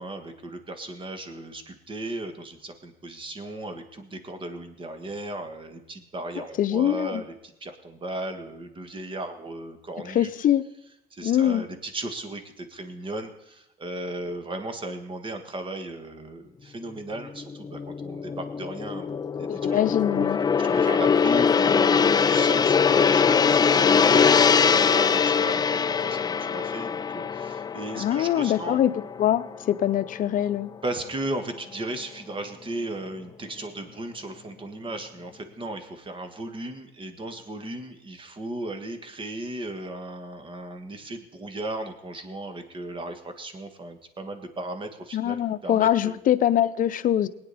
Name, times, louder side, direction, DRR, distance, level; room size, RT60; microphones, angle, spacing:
voice 1, 0.0-10.3 11.1-19.8 20.6-28.8 30.8-46.1, right 1 dB, 30° right, 7 dB, 1.7 m, -36 dB
voice 2, 6.6-7.2 10.1-10.6 11.2-11.6 19.5-20.4 27.9-28.9 29.2-30.7 45.1-47.3, left 11 dB, 55° left, 12 dB, 0.7 m, -23 dB
Gong, 17.2-29.7 30.0-30.3, left 6 dB, 25° left, 0.4 m, -22 dB
19.5 x 9.6 x 4.2 m, 0.86 s
cardioid pair, 110°, 17 cm